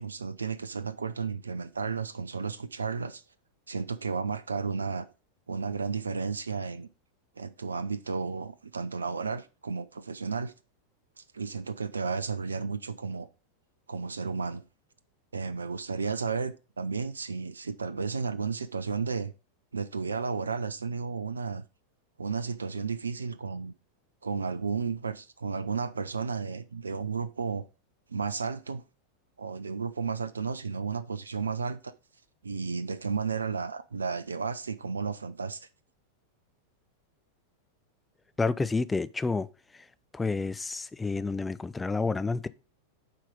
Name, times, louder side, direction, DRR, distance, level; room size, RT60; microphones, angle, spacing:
voice 1, 0.0-3.2 3.7-5.1 5.5-6.9 7.4-10.5 11.2-13.3 13.9-14.6 15.3-19.3 19.7-21.6 22.2-23.7 24.2-27.6 28.1-28.8 29.4-31.9 32.4-35.7, right 5 dB, 75° right, 0.4 m, -33 dB
voice 2, 38.4-39.5 39.7-39.9 40.1-42.5, left 3 dB, 10° left, 0.4 m, -29 dB
7.5 x 4.6 x 5.2 m
figure-of-eight pair, 90°, 0 cm